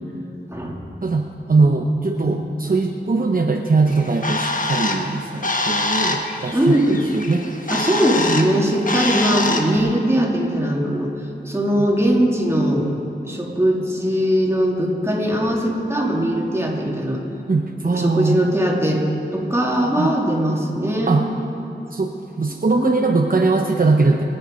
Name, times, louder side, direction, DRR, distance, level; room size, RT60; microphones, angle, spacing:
voice 1, 1.0-7.7 8.3-8.4 11.8-11.9 17.5-18.5 20.0-20.1 21.1-21.3 21.9-24.2, right 3 dB, 50° right, 2 dB, 0.8 m, -21 dB
Bird, 3.9-9.8, left 2 dB, 45° left, 1.2 m, -25 dB
voice 2, 6.5-7.0 7.7-11.1 11.4-13.0 13.2-17.2 17.8-19.0 19.3-21.2 22.7-23.0, equal, 15° right, -3 dB, 2.6 m, -20 dB
23.5 x 8.9 x 5.2 m, 2.9 s
wide cardioid pair, 65°, 19 cm